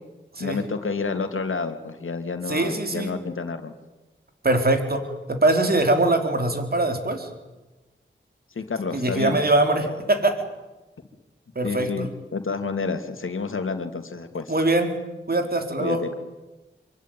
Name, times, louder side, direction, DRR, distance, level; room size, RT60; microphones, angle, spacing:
voice 1, 0.4-3.7 8.5-9.4 9.8-10.0 11.6-12.1 12.3-14.5 15.8-16.1, left 4 dB, 75° left, 7 dB, 2.8 m, -29 dB
voice 2, 2.5-3.1 4.4-7.3 8.9-10.4 11.6-12.1 14.5-15.0 15.3-16.0, right 2 dB, 50° right, 6 dB, 4.3 m, -22 dB
26.0 x 24.5 x 9.4 m, 1.1 s
cardioid pair, 60°, 21 cm